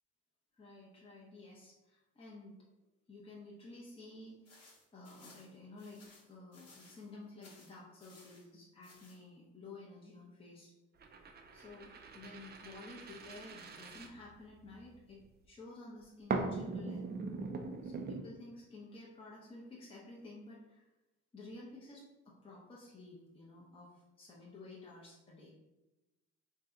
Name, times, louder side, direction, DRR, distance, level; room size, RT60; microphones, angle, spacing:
voice 1, 0.6-2.6 3.1-4.4 4.9-6.0 6.3-10.7 11.5-11.9 12.1-15.2 15.4-17.1 17.8-20.9 21.3-25.5, left 2 dB, 20° left, -5 dB, 0.6 m, -52 dB
sound 1, 4.4-7.1 7.4-8.5 8.8-9.2, left 2 dB, 55° left, 0.9 m, -60 dB
sound 2, 11.0-14.8 16.3-18.2, right 3 dB, 35° right, 0.4 m, -41 dB
2.6 x 2.2 x 3.6 m, 1.0 s
cardioid pair, 90°, 30 cm